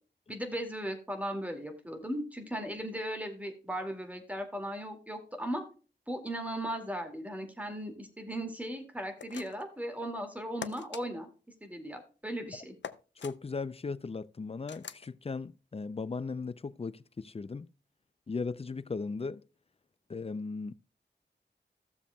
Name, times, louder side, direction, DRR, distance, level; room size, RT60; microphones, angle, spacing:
voice 1, 0.3-5.7 6.1-11.3 11.6-12.7, equal, 10° right, 2.1 m, -37 dB
sound 1, 9.2-9.8 10.6-11.0 12.8-13.4 14.7-15.1, left 7 dB, 80° left, 0.6 m, -43 dB
voice 2, 13.2-17.7 18.3-19.4 20.1-20.7, left 4 dB, 35° left, 0.4 m, -37 dB
15.5 x 7.0 x 2.2 m
wide cardioid pair, 80°, 18 cm